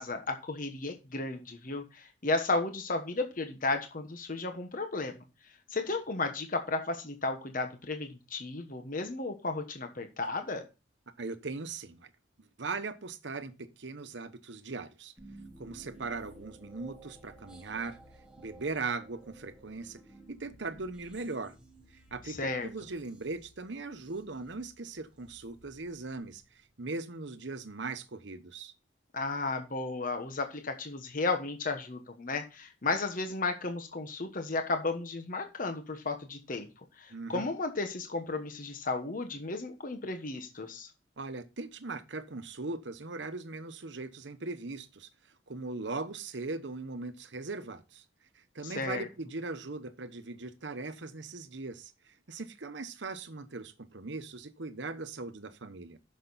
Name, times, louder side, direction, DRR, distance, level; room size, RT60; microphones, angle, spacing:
voice 1, 0.0-5.2 5.7-10.6 22.2-22.7 29.1-36.7 37.0-40.9 48.6-49.1, left 3 dB, 45° left, 1.1 m, -34 dB
voice 2, 11.2-12.1 12.6-15.1 15.6-18.0 18.4-20.0 20.3-21.5 22.1-26.4 26.8-28.7 37.1-37.4 41.2-45.1 45.5-48.0 48.3-56.0, right 3 dB, 65° right, 1.0 m, -39 dB
sound 1, 15.2-26.7, right 2 dB, 5° right, 1.7 m, -55 dB
10.0 x 6.6 x 4.1 m
head